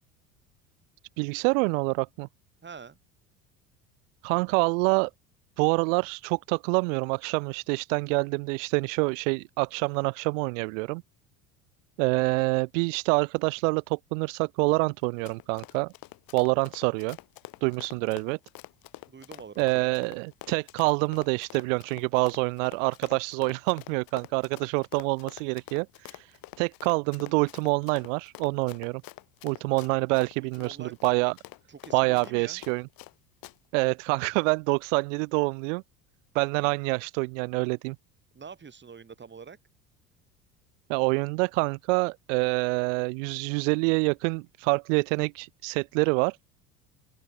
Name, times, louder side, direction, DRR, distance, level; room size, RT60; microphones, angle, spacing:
voice 1, 1.2-2.3 4.2-5.1 5.6-11.0 12.0-15.9 16.3-17.2 17.6-18.4 19.6-29.0 29.4-31.3 31.9-32.9 33.7-35.8 36.3-38.0 40.9-46.4, right 32 dB, 60° right, 0.8 m, -26 dB
voice 2, 2.6-3.0 19.1-19.9 30.6-31.0 31.7-32.6 38.3-39.6, right 6 dB, 25° right, 3.9 m, -45 dB
Run, 15.0-33.1 33.4-33.5, left 18 dB, 55° left, 2.9 m, -46 dB
open air
hypercardioid pair, 70°, 43 cm